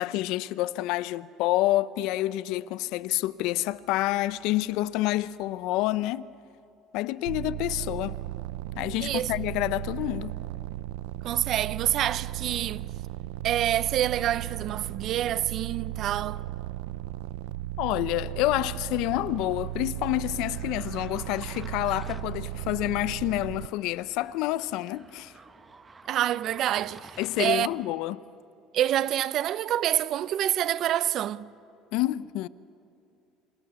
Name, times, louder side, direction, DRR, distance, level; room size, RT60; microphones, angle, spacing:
voice 1, 0.0-6.3 6.9-8.2 8.8-10.4 17.8-25.3 27.2-28.2 31.9-32.5, left 16 dB, 70° left, 0.7 m, -28 dB
sound 1, 7.3-23.7, right 14 dB, 85° right, 0.5 m, -36 dB
voice 2, 9.0-9.3 11.2-12.9 13.4-16.4 26.1-27.7 28.7-31.5, right 12 dB, 55° right, 0.8 m, -27 dB
sound 2, 18.6-27.9, right 4 dB, 25° right, 1.3 m, -51 dB
28.0 x 25.5 x 7.1 m
supercardioid pair, 95°, 0 cm